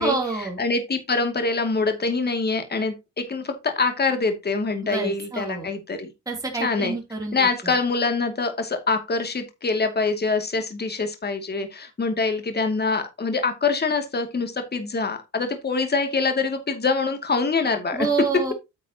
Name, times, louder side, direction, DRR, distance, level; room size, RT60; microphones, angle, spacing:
voice 1, 0.0-0.6 4.8-5.7 6.3-7.7 17.9-18.5, right 4 dB, 10° right, 3.1 m, -28 dB
voice 2, 0.6-6.1 6.6-6.9 7.3-18.1, left 4 dB, 35° left, 2.5 m, -25 dB
9.3 x 8.1 x 2.9 m
cardioid pair, 90°, 30 cm